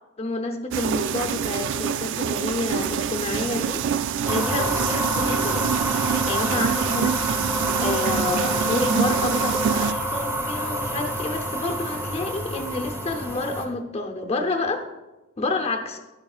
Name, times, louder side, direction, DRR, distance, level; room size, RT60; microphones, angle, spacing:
voice 1, 0.2-3.8 4.2-5.8 6.3-7.2 7.5-14.8 15.4-16.0, left 2 dB, 30° left, 4 dB, 0.7 m, -29 dB
sound 1, 0.7-9.9, right 8 dB, 60° right, 0.3 m, -26 dB
sound 2, 4.3-13.6, right 1 dB, 15° right, 1.1 m, -27 dB
11.5 x 10.5 x 2.4 m, 1.1 s
head